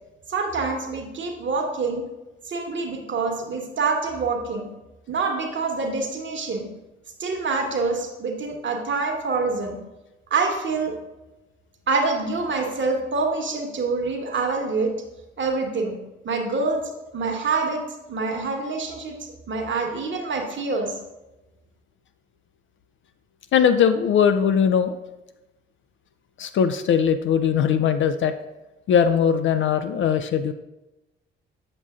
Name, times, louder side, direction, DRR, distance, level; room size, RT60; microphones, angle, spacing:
voice 1, 0.3-2.0 2.5-4.7 5.1-6.7 7.2-9.8 10.3-11.0 11.9-14.9 15.4-16.0 16.2-21.0, right 4 dB, 40° right, 3 dB, 1.1 m, -26 dB
voice 2, 23.5-25.0 26.4-28.3 28.9-30.5, left 7 dB, 40° left, 9 dB, 0.4 m, -20 dB
7.1 x 6.9 x 2.4 m, 1.0 s
figure-of-eight pair, 40°, 30 cm